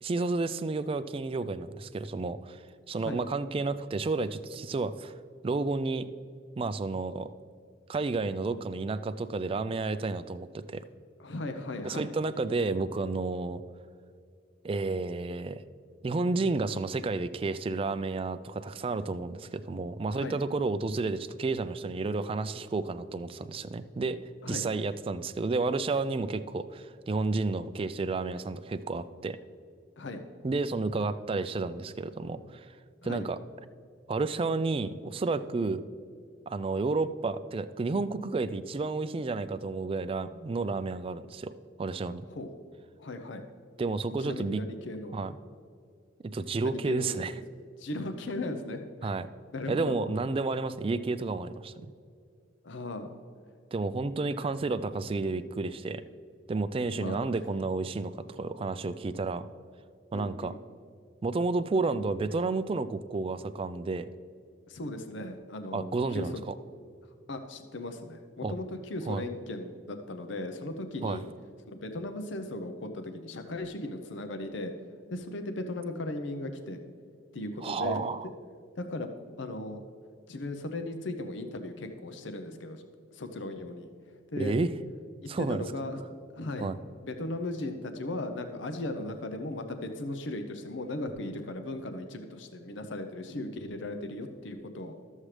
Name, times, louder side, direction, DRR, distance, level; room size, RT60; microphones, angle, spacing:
voice 1, 0.0-2.6 2.9-5.1 5.4-6.1 6.6-7.3 7.9-10.8 11.8-13.6 14.6-15.6 16.0-24.2 24.5-29.4 30.4-32.7 33.0-33.4 34.1-35.8 36.5-41.5 41.8-42.3 43.8-44.6 45.1-45.3 46.3-47.3 49.0-49.3 49.7-51.9 53.7-56.0 56.5-59.5 60.1-60.5 61.2-64.1 65.7-66.5 68.4-68.5 69.1-69.2 71.0-71.2 77.6-78.3 84.4-84.7 85.3-85.6 86.6-86.8, right 3 dB, 30° right, 13 dB, 0.3 m, -31 dB
voice 2, 11.2-12.1 20.1-20.4 24.4-24.7 30.0-30.2 33.0-33.2 42.3-42.5 43.0-43.4 44.2-45.2 46.6-47.4 47.8-49.1 49.5-50.0 52.6-53.1 56.9-57.2 57.9-58.0 60.1-60.6 64.7-66.4 67.3-71.3 71.7-74.7 75.1-76.8 77.3-78.0 78.8-79.1 79.4-79.8 80.3-82.8 83.1-83.9 84.3-84.5 85.4-86.0 86.3-86.7 87.0-94.9, left 2 dB, 70° left, 7 dB, 0.7 m, -37 dB
13.0 x 7.3 x 3.3 m, 2.3 s
head